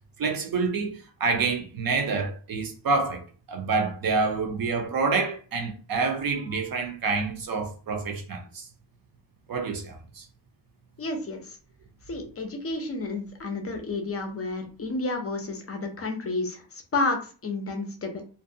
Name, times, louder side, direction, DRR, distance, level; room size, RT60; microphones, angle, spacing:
voice 1, 0.2-8.6 9.5-10.3, right 4 dB, 50° right, 0.7 m, -27 dB
voice 2, 11.0-11.5 12.1-18.2, left 3 dB, 30° left, 0.5 m, -31 dB
2.5 x 2.1 x 2.6 m
wide cardioid pair, 155°, 45 cm